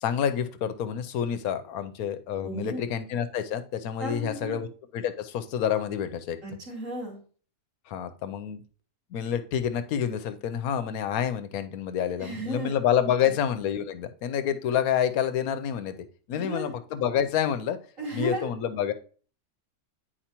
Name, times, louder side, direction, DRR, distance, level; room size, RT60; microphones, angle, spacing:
voice 1, 0.0-4.7 4.9-6.4 7.9-8.6 9.1-16.0 16.3-17.8 18.1-18.9, left 9 dB, 85° left, 10 dB, 1.1 m, -28 dB
voice 2, 2.4-2.8 4.0-4.6 6.4-7.2 12.2-12.7 13.3-13.4 16.4-16.7 18.0-18.5, right 1 dB, 60° right, -2 dB, 2.6 m, -34 dB
10.0 x 4.6 x 2.9 m, 0.41 s
omnidirectional pair, 1.5 m